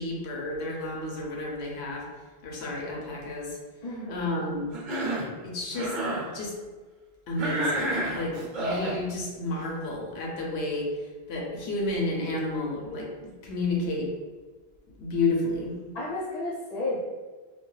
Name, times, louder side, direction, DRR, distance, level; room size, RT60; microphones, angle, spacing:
voice 1, 0.0-2.0 2.4-3.6 4.1-4.7 5.4-6.0 6.3-6.5 7.3-11.0 11.3-14.1 15.0-15.7, left 2 dB, 75° left, -1 dB, 0.9 m, -31 dB
voice 2, 3.8-4.1 15.9-17.0, left 2 dB, 45° left, -7 dB, 0.7 m, -32 dB
Cough, 4.7-5.3 5.7-6.3 7.4-9.0, right 1 dB, 55° right, 0.7 m, -29 dB
2.3 x 2.2 x 3.0 m, 1.4 s
omnidirectional pair, 1.1 m